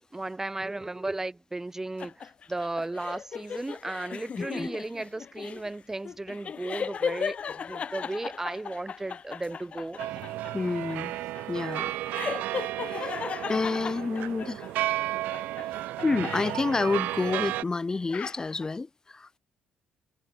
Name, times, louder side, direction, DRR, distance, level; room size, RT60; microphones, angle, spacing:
voice 1, 0.1-10.0, right 2 dB, 15° right, 0.8 m, -35 dB
sound 1, 2.0-14.9 15.3-17.6 17.9-18.7, left 6 dB, 50° left, 2.2 m, -37 dB
voice 2, 4.4-4.8 10.5-11.2 11.5-11.9 12.8-13.2 13.5-14.7 16.0-19.4, left 3 dB, 25° left, 0.4 m, -29 dB
sound 2, 10.0-17.6, right 16 dB, 80° right, 0.8 m, -33 dB
supercardioid pair, 65°, 3 cm